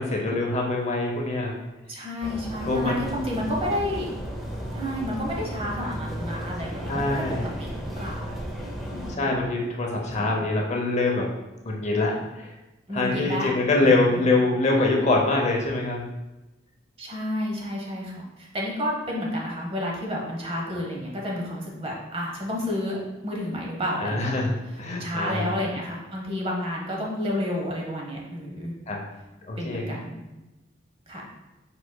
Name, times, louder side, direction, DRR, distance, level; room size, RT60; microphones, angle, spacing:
voice 1, 0.0-1.5 2.7-3.0 6.9-7.4 9.2-11.2 11.6-12.5 12.9-16.0 20.7-20.8 24.0-25.5 28.9-29.0 29.5-30.0, left 2 dB, 35° left, -1 dB, 0.7 m, -24 dB
voice 2, 1.9-4.1 4.7-7.2 7.6-7.7 8.0-8.3 8.9-9.4 10.2-10.5 12.9-13.5 13.8-14.2 17.0-24.4 24.9-28.7 29.6-30.2 31.1-31.3, left 1 dB, 30° right, -2 dB, 0.9 m, -31 dB
sound 1, 2.2-9.2, equal, ahead, 0.7 m, -34 dB
4.9 x 4.8 x 2.2 m, 1.0 s
head